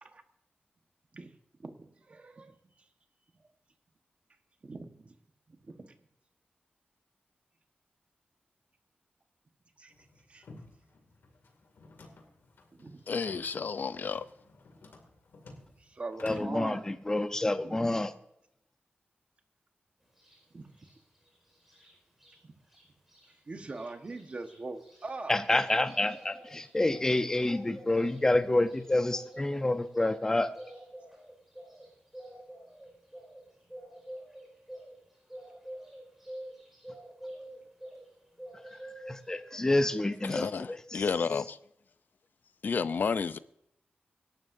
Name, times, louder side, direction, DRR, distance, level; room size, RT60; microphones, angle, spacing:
voice 1, 1.6-2.6 4.6-5.1 5.5-6.0 9.8-9.9 10.3-10.4 12.7-13.0 15.8-16.8 17.6-18.0 20.5-20.7 22.4-22.5 23.5-25.4, right 3 dB, 35° right, 1.3 m, -42 dB
sound 1, 9.9-17.3, left 2 dB, 80° left, 2.4 m, -53 dB
voice 2, 13.1-14.3 40.2-41.6 42.6-43.4, left 5 dB, 60° left, 0.5 m, -31 dB
voice 3, 16.2-18.1 25.3-30.5 38.8-40.5 40.9-41.0, left 2 dB, 15° left, 0.7 m, -28 dB
sound 2, 20.2-20.4 20.7-22.4 22.7-22.8 23.1-38.1 38.4-39.5, right 1 dB, 5° right, 4.8 m, -48 dB
25.0 x 12.0 x 2.7 m
wide cardioid pair, 160°, 4 cm